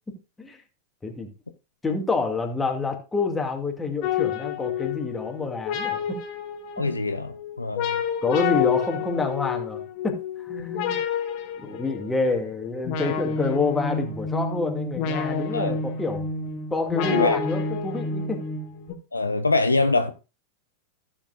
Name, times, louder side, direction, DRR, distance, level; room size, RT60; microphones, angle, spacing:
voice 1, 0.1-0.6 1.0-1.3 1.8-6.2 6.8-7.0 8.2-11.0 11.6-16.3 16.7-18.4, left 3 dB, 10° left, 2.3 m, -28 dB
sound 1, 4.0-18.9, left 6 dB, 45° left, 1.5 m, -29 dB
voice 2, 6.8-8.0 15.5-15.8 17.1-17.4 19.1-20.1, left 2 dB, 80° left, 0.7 m, -24 dB
15.0 x 7.4 x 2.5 m
figure-of-eight pair, 90°, 0 cm